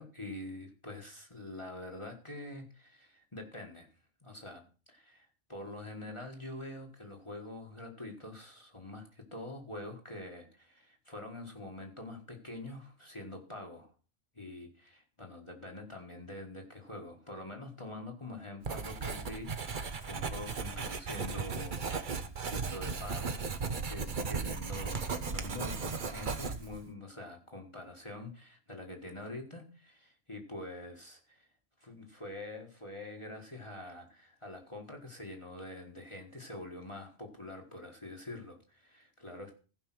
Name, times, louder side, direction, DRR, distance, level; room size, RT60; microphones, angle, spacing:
voice 1, 0.0-3.9 4.2-4.6 4.9-13.9 14.3-31.5 31.8-39.6, left 2 dB, 25° left, 1 dB, 1.7 m, -45 dB
Writing, 18.6-26.8, right 5 dB, 45° right, 1.0 m, -36 dB
15.5 x 5.4 x 6.1 m, 0.37 s
omnidirectional pair, 1.3 m